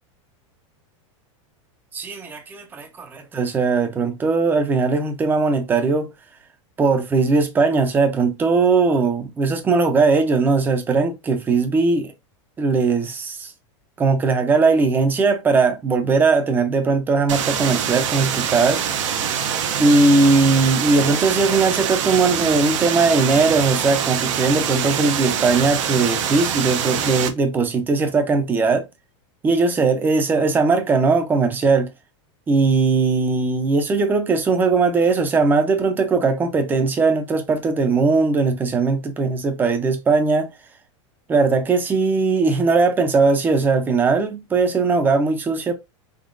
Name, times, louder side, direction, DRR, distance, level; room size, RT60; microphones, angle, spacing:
voice 1, 1.9-6.1 6.8-12.1 12.6-13.5 14.0-19.2 19.8-28.8 29.4-31.9 32.5-40.5 41.3-45.7, right 4 dB, 10° right, 0.5 m, -19 dB
sound 1, 17.3-27.3, right 8 dB, 75° right, 0.7 m, -24 dB
3.7 x 3.2 x 2.5 m
supercardioid pair, 165°, 16 cm